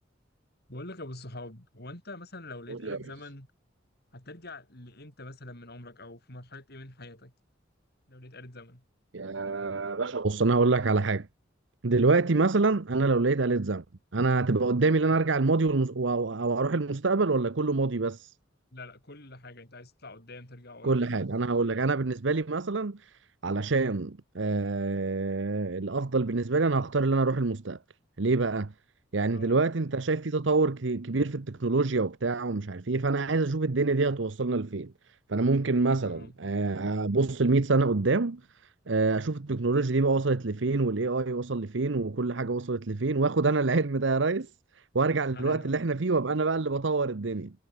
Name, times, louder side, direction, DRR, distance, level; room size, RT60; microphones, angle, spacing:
voice 1, 0.7-3.5 4.1-7.3 8.1-8.8 18.7-21.3 29.3-29.6 36.0-36.3 45.3-45.9, left 2 dB, 55° left, 7.6 m, -45 dB
voice 2, 9.1-11.3 11.8-13.8 14.1-18.3 20.8-27.8 28.2-28.7 29.1-34.9 35.3-38.4 38.9-44.5 44.7-47.5, right 3 dB, 70° right, 0.9 m, -26 dB
head